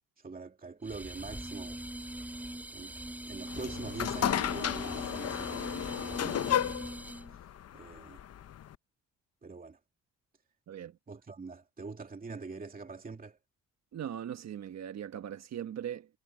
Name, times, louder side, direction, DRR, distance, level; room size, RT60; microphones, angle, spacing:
voice 1, 0.2-1.8 2.7-3.0 3.3-5.7 6.0-6.8 7.3-8.2 9.4-9.8 11.1-13.4, right 4 dB, 30° right, 2.6 m, -44 dB
sound 1, 0.9-7.4, right 1 dB, 5° right, 2.7 m, -42 dB
sound 2, 3.5-8.8, left 11 dB, 55° left, 0.9 m, -33 dB
voice 2, 13.9-16.1, right 9 dB, 60° right, 1.4 m, -39 dB
cardioid pair, 90°, 30 cm